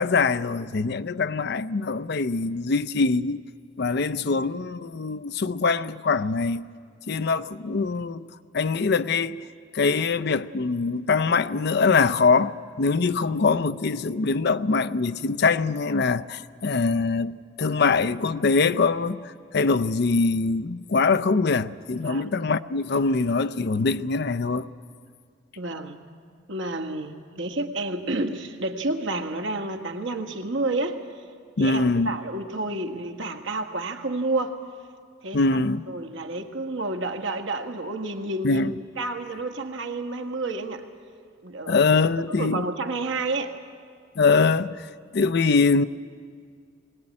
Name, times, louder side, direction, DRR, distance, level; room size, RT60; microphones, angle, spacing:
voice 1, 0.0-3.4 3.8-6.6 7.1-8.3 8.5-9.4 9.7-24.7 31.6-32.1 35.3-35.8 38.4-38.7 41.7-42.7 44.2-44.9 45.1-45.8, left 4 dB, 60° left, 0.6 m, -23 dB
voice 2, 21.9-22.3 25.6-26.0 26.5-31.0 31.6-34.6 35.2-35.4 35.9-40.9 41.4-42.0 42.4-43.6, right 2 dB, 85° right, 1.7 m, -30 dB
22.0 x 18.0 x 9.8 m
head